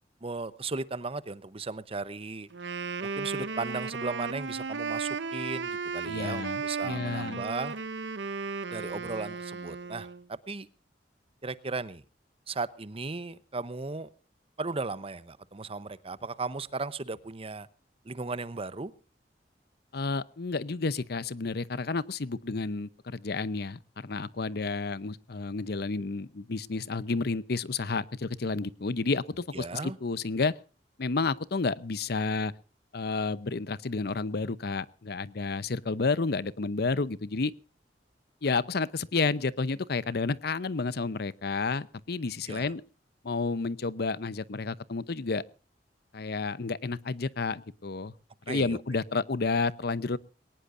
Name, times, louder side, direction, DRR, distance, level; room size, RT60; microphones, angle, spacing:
voice 1, 0.2-2.5 3.0-7.7 8.7-10.7 11.4-12.0 12.5-14.1 14.6-17.7 18.0-18.9 29.5-30.0 42.5-42.7 48.5-48.8, right 3 dB, 35° right, 16 dB, 0.8 m, -36 dB
Wind instrument woodwind instrument, 2.5-10.2, right 5 dB, 90° right, 0.9 m, -35 dB
voice 2, 6.1-7.4 19.9-30.5 31.0-32.5 32.9-37.5 38.4-42.8 43.2-45.4 46.1-48.1 48.5-50.2, left 4 dB, 60° left, 18 dB, 0.7 m, -31 dB
21.5 x 18.5 x 2.6 m, 0.36 s
head